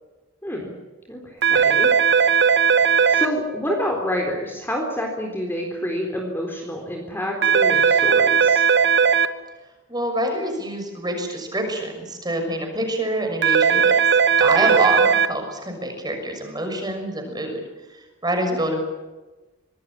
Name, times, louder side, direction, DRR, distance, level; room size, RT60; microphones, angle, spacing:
voice 1, 0.4-0.8 1.1-1.9 3.1-8.6 14.6-14.8, equal, 10° left, 1 dB, 3.9 m, -28 dB
sound 1, 1.4-3.3 7.4-9.3 13.4-15.3, right 6 dB, 55° right, 1.3 m, -17 dB
voice 2, 9.9-13.9 14.4-17.6 17.9-18.8, right 1 dB, 20° right, 4 dB, 6.3 m, -26 dB
25.0 x 20.0 x 8.8 m, 1.2 s
head